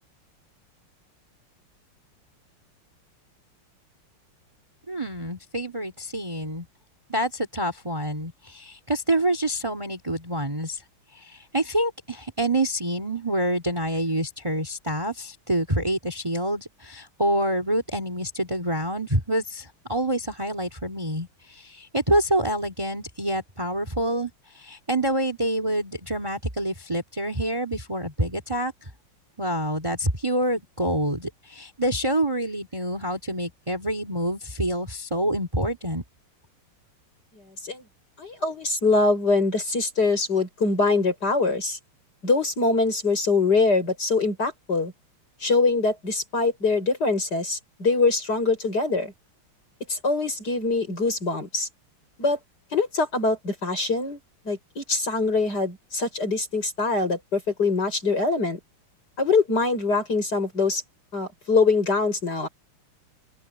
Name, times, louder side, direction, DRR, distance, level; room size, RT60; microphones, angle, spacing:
voice 1, 4.9-6.7 7.1-10.8 11.1-28.7 29.4-36.0, right 1 dB, 15° right, 2.8 m, -27 dB
voice 2, 38.2-41.8 42.2-44.9 45.4-49.1 49.9-51.7 52.2-52.4 52.7-54.2 54.5-58.6 59.2-60.8 61.1-62.5, left 3 dB, 45° left, 7.4 m, -23 dB
open air
omnidirectional pair, 2.4 m